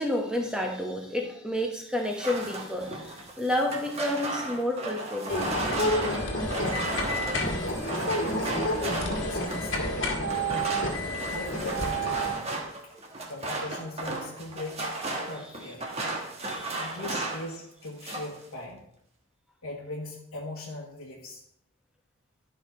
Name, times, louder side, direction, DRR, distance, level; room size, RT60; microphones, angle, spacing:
voice 1, 0.0-5.5 16.4-16.9, left 1 dB, 5° right, 1 dB, 1.1 m, -30 dB
sound 1, 2.0-9.8 10.3-17.5 17.8-18.4, right 2 dB, 30° right, 1.3 m, -35 dB
sound 2, 5.3-12.3, equal, 55° left, 1.7 m, -29 dB
voice 2, 7.7-8.5 9.0-10.8 11.3-12.5 12.8-12.9 13.3-14.9 15.2-15.8 16.8-18.9 19.6-21.4, left 2 dB, 80° left, -3 dB, 1.3 m, -40 dB
11.5 x 5.2 x 4.3 m, 0.74 s
head